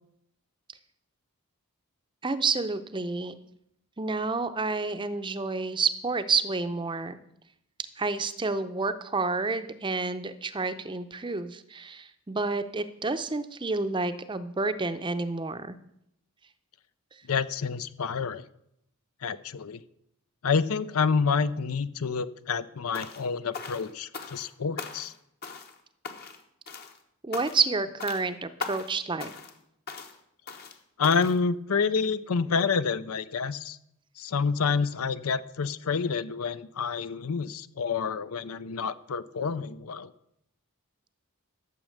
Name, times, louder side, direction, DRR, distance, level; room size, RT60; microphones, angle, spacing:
voice 1, 2.2-3.3 4.0-7.2 8.0-15.8 27.2-29.3, right 4 dB, 20° right, 11 dB, 0.6 m, -29 dB
voice 2, 17.3-18.5 19.2-19.8 20.4-25.1 31.0-33.8 34.2-40.1, left 5 dB, 75° left, 15 dB, 0.6 m, -28 dB
sound 1, 22.9-23.3 23.5-24.5 24.8-25.2 25.4-25.8 26.0-26.4 26.7-27.0 27.3-27.7 28.0-28.2 28.6-28.9 29.2-29.6 29.9-30.1 30.5-30.8 31.0-31.4, left 4 dB, 45° left, 1.1 m, -39 dB
12.0 x 7.2 x 6.5 m, 0.77 s
head